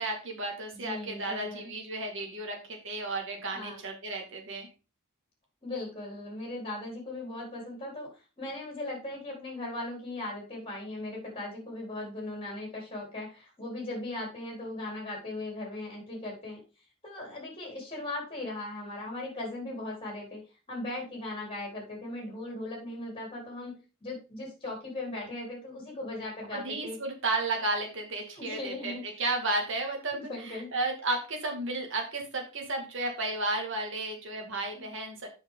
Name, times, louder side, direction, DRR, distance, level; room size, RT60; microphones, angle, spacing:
voice 1, 0.0-4.7 26.5-30.2 30.4-35.3, right 2 dB, 60° right, 3 dB, 2.2 m, -33 dB
voice 2, 0.8-1.7 3.5-3.8 5.6-16.6 17.0-20.4 20.7-27.0 28.4-29.1 30.1-30.7 34.7-34.9, left 2 dB, 25° left, -1 dB, 4.0 m, -38 dB
7.9 x 6.1 x 3.8 m, 0.31 s
head